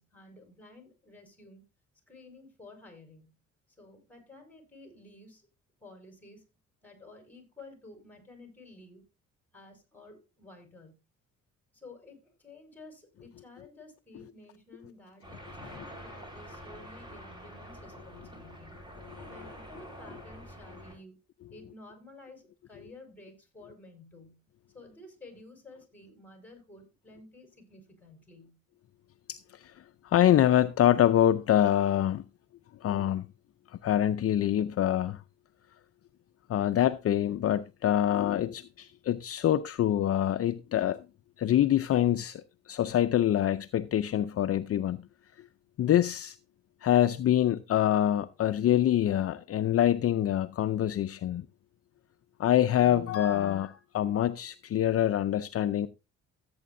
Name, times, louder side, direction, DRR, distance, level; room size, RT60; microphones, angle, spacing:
voice 1, 0.0-1.7 2.1-3.3 3.8-5.5 5.8-6.4 6.8-9.0 9.5-10.9 11.7-18.7 19.3-21.2 21.5-24.4 24.7-28.6, left 2 dB, 5° left, 4.9 m, -52 dB
sound 1, 15.2-20.9, equal, 15° right, 4.1 m, -46 dB
voice 2, 29.3-29.7 30.0-32.2 32.8-33.3 33.8-35.2 36.5-41.0 41.4-45.1 45.8-46.4 46.8-51.4 52.4-55.9, left 11 dB, 50° left, 0.5 m, -25 dB
15.0 x 8.5 x 2.6 m
cardioid pair, 90°, 30 cm